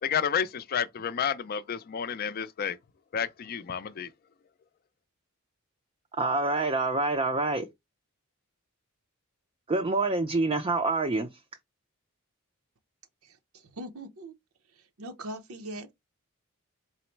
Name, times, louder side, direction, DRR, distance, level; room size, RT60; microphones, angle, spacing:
voice 1, 0.0-2.8 3.1-4.1, left 7 dB, 45° left, 0.4 m, -30 dB
voice 2, 6.2-7.7 9.7-11.3, right 2 dB, 25° right, 0.4 m, -26 dB
voice 3, 13.2-14.3 14.7-15.9, right 1 dB, 80° right, 0.7 m, -41 dB
4.0 x 2.0 x 4.4 m
head